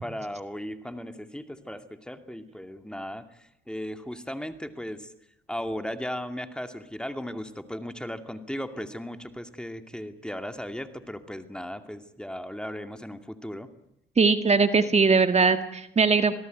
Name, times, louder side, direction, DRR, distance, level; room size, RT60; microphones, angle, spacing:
voice 1, 0.0-5.1 5.5-13.7, equal, 5° left, 8 dB, 2.4 m, -36 dB
voice 2, 14.2-16.3, right 4 dB, 35° right, 9 dB, 1.9 m, -20 dB
26.5 x 18.0 x 9.4 m, 0.79 s
cardioid pair, 90°, 20 cm